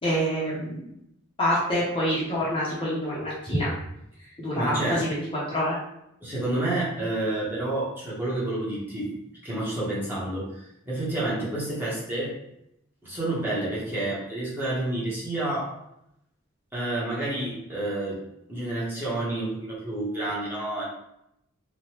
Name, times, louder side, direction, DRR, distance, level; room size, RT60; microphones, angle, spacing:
voice 1, 0.0-0.8 1.4-3.7 4.4-5.2 5.5-5.8, equal, 25° left, -7 dB, 0.7 m, -26 dB
voice 2, 4.2-5.1 6.2-9.1 9.4-10.5 10.9-12.3 13.0-15.8 16.7-18.2 18.5-20.8, right 1 dB, 10° right, -8 dB, 0.9 m, -29 dB
3.1 x 2.2 x 2.9 m, 0.80 s
head